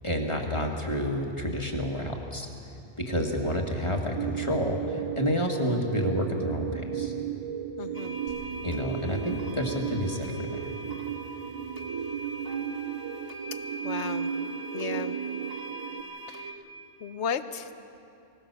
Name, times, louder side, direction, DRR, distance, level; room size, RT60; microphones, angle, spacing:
voice 1, 0.0-2.5 3.0-7.1 8.6-10.3, equal, 25° left, 1 dB, 1.9 m, -29 dB
sound 1, 4.1-16.0, right 8 dB, 50° right, 0.4 m, -35 dB
voice 2, 7.8-8.2 13.8-14.3 14.7-15.2 16.3-16.5 17.0-17.7, left 7 dB, 70° left, 11 dB, 1.1 m, -34 dB
sound 2, 7.9-16.5, right 3 dB, 20° right, 1.5 m, -40 dB
sound 3, 8.3-13.5, left 2 dB, 85° right, 4.0 m, -47 dB
24.0 x 17.5 x 6.8 m, 2.7 s
omnidirectional pair, 1.2 m